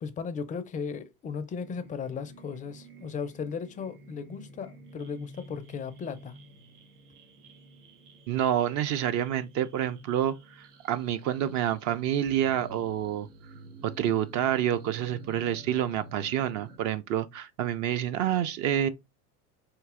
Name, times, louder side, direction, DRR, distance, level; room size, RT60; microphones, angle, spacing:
voice 1, 0.0-6.4, left 6 dB, 20° left, 0.4 m, -36 dB
sound 1, 1.6-16.8, right 2 dB, 85° right, 0.8 m, -50 dB
voice 2, 8.3-13.3 13.8-18.9, right 10 dB, 40° right, 0.4 m, -28 dB
4.4 x 2.7 x 2.4 m
hypercardioid pair, 85°, 45 cm